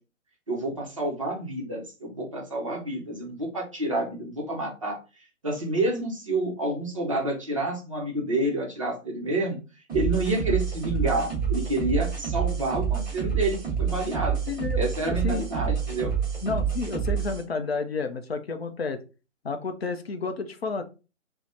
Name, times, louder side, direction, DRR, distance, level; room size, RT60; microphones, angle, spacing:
voice 1, 0.5-5.0 5.4-9.6 9.9-14.4 14.7-16.1, right 1 dB, 25° right, -1 dB, 0.5 m, -28 dB
sound 1, 9.9-17.4, right 7 dB, 5° right, 0.9 m, -28 dB
voice 2, 14.5-14.8 15.1-15.4 16.4-19.0 19.4-20.8, left 4 dB, 55° left, 7 dB, 0.5 m, -30 dB
3.0 x 2.0 x 2.6 m, 0.31 s
figure-of-eight pair, 135°, 39 cm